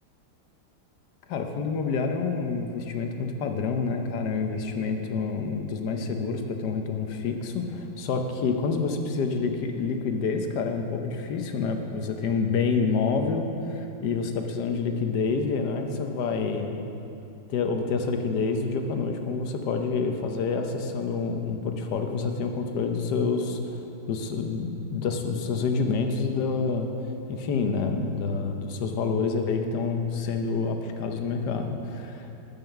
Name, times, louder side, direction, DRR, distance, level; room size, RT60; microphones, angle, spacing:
voice 1, 1.3-16.8 17.5-26.9 27.3-32.3, left 4 dB, 65° left, 5 dB, 1.3 m, -28 dB
13.5 x 5.5 x 5.8 m, 2.8 s
omnidirectional pair, 2.1 m